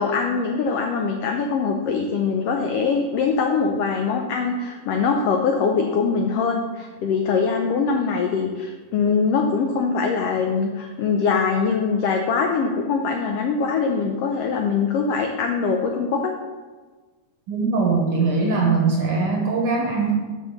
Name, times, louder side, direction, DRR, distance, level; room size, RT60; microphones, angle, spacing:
voice 1, 0.0-16.3, left 5 dB, 85° left, 3 dB, 1.3 m, -22 dB
voice 2, 17.5-20.1, right 4 dB, 60° right, -1 dB, 1.5 m, -21 dB
6.1 x 5.4 x 6.9 m, 1.4 s
omnidirectional pair, 3.5 m